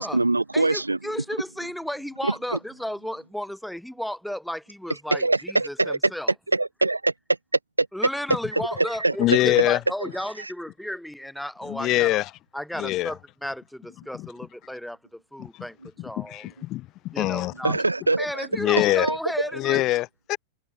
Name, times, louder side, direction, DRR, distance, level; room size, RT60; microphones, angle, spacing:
voice 1, 0.0-1.0 2.2-2.6 5.1-6.0 6.5-7.1 7.8-7.9 8.5-8.6 9.0-9.7 10.4-10.5 17.6-18.5 18.9-19.2, right 2 dB, 85° right, 3.6 m, -24 dB
voice 2, 0.5-6.3 7.9-12.2 12.5-16.5 17.1-17.7 18.2-19.8, equal, ahead, 6.7 m, -33 dB
voice 3, 9.2-9.8 11.6-12.3 12.8-13.1 14.1-14.3 15.4-15.7 16.0-17.8 18.5-19.1 19.5-20.4, left 17 dB, 35° left, 4.1 m, -24 dB
figure-of-eight pair, 90°, 0 cm